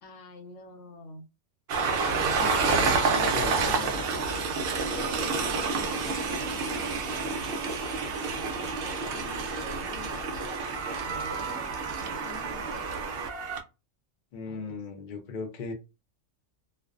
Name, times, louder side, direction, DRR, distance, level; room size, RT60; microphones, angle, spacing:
voice 1, 0.0-1.3 2.0-3.5 3.9-4.2 4.7-6.6 8.8-10.7 11.0-13.2 14.5-14.8, left 2 dB, 70° left, 1.0 m, -44 dB
Train, 1.7-13.6, right 4 dB, 65° right, 0.6 m, -29 dB
voice 2, 2.4-4.1 14.3-15.7, left 4 dB, 50° left, 0.6 m, -37 dB
2.5 x 2.1 x 2.4 m
omnidirectional pair, 1.4 m